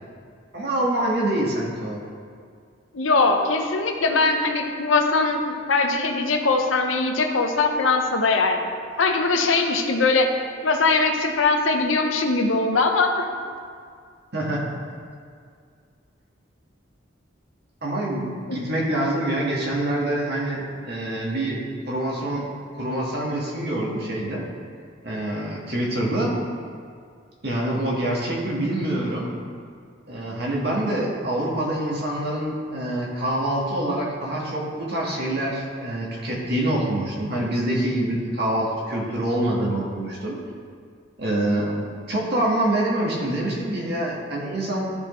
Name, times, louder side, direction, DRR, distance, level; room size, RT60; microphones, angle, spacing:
voice 1, 0.5-2.0 14.3-14.6 17.8-21.6 21.9-22.5 22.8-24.5 25.0-26.3 27.4-29.4 30.1-40.4 41.2-41.8 42.1-44.9, right 1 dB, 55° right, -4 dB, 1.6 m, -25 dB
voice 2, 2.9-8.7 9.0-10.3 10.6-13.3, left 3 dB, 85° left, 4 dB, 0.8 m, -21 dB
13.0 x 4.4 x 3.2 m, 2.2 s
head